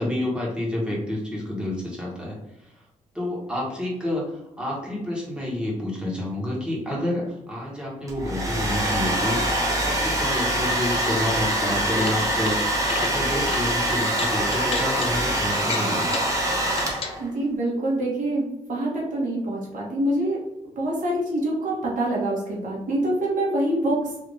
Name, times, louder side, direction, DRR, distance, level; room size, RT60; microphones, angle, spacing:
voice 1, 0.0-2.8 3.1-16.1, left 1 dB, 5° right, -4 dB, 1.3 m, -29 dB
Domestic sounds home sounds, 8.1-17.3, right 1 dB, 25° right, 0.9 m, -24 dB
sound 1, 11.9-12.5 12.8-13.1 13.5-13.6 14.1-15.1 15.6-16.3 16.7-17.2, left 4 dB, 50° left, 0.6 m, -33 dB
voice 2, 17.2-20.4 20.8-24.0, right 1 dB, 75° right, -4 dB, 1.4 m, -25 dB
3.5 x 2.8 x 3.9 m, 0.89 s
wide cardioid pair, 130°, 13 cm